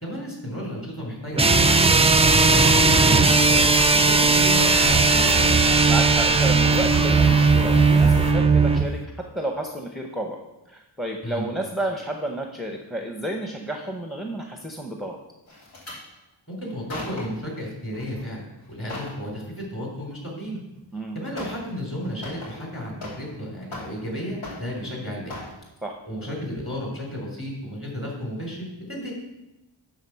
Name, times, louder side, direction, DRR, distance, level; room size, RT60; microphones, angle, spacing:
voice 1, 0.0-5.6 11.2-11.5 16.5-20.6 21.1-25.3 26.1-29.1, equal, 30° left, -2 dB, 3.2 m, -33 dB
sound 1, 1.3-8.9, right 4 dB, 15° right, 0.3 m, -17 dB
sound 2, 2.1-8.3, left 2 dB, 50° left, 1.0 m, -31 dB
voice 2, 5.8-10.4 10.7-15.2 20.9-21.2 25.8-25.9, right 1 dB, ahead, 2 dB, 0.7 m, -31 dB
sound 3, 15.5-16.0 16.6-17.4 17.9-18.2 18.6-19.2 20.6-20.7 21.4-21.7 22.0-23.4 23.6-24.1 24.4-24.9 25.3-25.6 26.1-26.3 26.6-26.7, left 2 dB, 80° left, 3.0 m, -38 dB
11.5 x 4.0 x 5.6 m, 0.97 s
wide cardioid pair, 120°, 46 cm